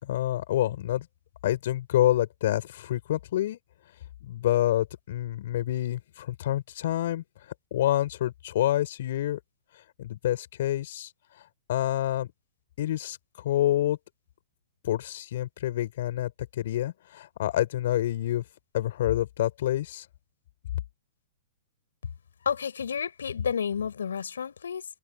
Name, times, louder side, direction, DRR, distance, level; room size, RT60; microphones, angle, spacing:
voice 1, 0.0-1.1 1.4-3.6 4.2-7.2 7.7-9.4 10.0-11.1 11.7-12.3 12.8-14.0 14.8-16.3 16.6-18.4 18.7-20.1, left 13 dB, 60° left, 5.3 m, -27 dB
voice 2, 22.4-24.9, left 7 dB, 75° left, 5.3 m, -30 dB
hypercardioid pair, 115°, 0 cm